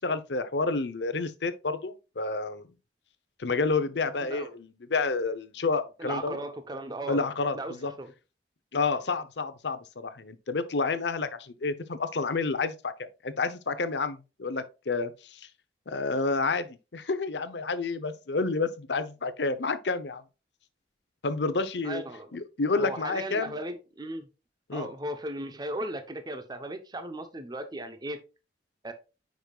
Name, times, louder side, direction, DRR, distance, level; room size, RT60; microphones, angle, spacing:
voice 1, 0.0-2.7 3.4-6.4 7.1-7.9 8.7-15.5 15.9-20.2 21.2-22.0 22.3-23.5 24.7-24.9, left 3 dB, 75° left, 0.8 m, -29 dB
voice 2, 6.0-7.2 7.5-8.1 21.8-22.3 22.7-24.3 24.7-28.2 28.8-28.9, right 1 dB, 25° right, 0.8 m, -36 dB
9.3 x 5.3 x 2.4 m
head